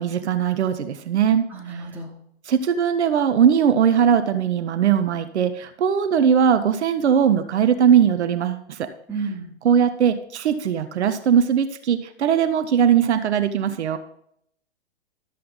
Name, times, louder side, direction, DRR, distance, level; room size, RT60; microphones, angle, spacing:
voice 1, 0.0-1.8 2.5-8.9 9.6-14.0, right 8 dB, 75° right, 10 dB, 0.9 m, -20 dB
voice 2, 1.5-2.1 9.1-9.5, right 4 dB, 5° right, -3 dB, 2.6 m, -31 dB
12.5 x 7.6 x 3.9 m, 0.69 s
hypercardioid pair, 130°, 34 cm